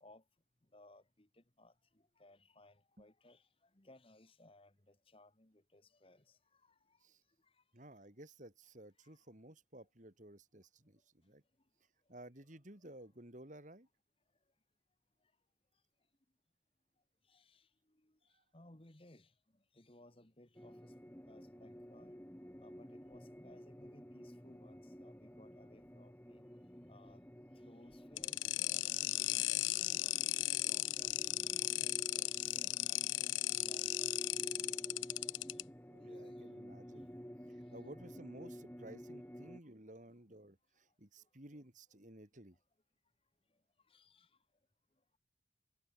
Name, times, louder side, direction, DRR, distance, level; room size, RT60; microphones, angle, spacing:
voice 1, 0.7-1.7 2.2-3.4 3.7-6.7 9.0-9.2 17.3-17.7 18.0-18.1 18.5-19.3 19.7-20.9 21.3-22.2 22.6-26.5 26.9-27.2 27.5-31.1 31.5-34.1 35.4-35.5 36.2-36.6 43.9-44.3, left 1 dB, 30° left, 1.7 m, -63 dB
voice 2, 7.7-11.4 12.1-13.9 18.3-18.4 35.9-37.1 37.5-42.6, right 1 dB, 40° right, 3.0 m, -55 dB
sound 1, 20.6-39.6, equal, 10° left, 1.9 m, -51 dB
sound 2, 28.2-35.6, left 19 dB, 85° left, 0.3 m, -36 dB
head